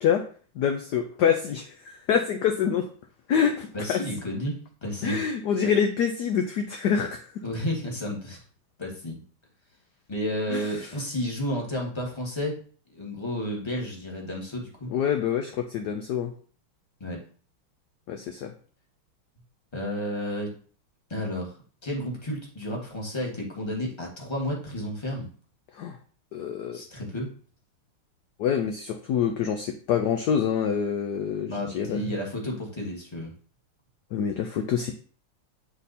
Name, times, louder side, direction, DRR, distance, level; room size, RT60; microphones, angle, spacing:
voice 1, 0.6-2.9 3.3-4.0 5.0-7.2 10.5-10.7 14.9-16.3 18.1-18.5 25.8-26.0 26.3-26.8 28.4-32.0 34.1-35.0, left 7 dB, 70° left, 5 dB, 1.0 m, -26 dB
voice 2, 3.7-5.2 7.4-8.4 8.8-9.2 10.1-12.6 12.9-14.9 17.0-17.2 19.7-20.5 21.1-21.6 21.8-25.3 26.7-27.3 31.5-33.3, equal, 15° left, -1 dB, 1.5 m, -32 dB
8.1 x 3.8 x 4.2 m, 0.44 s
omnidirectional pair, 2.3 m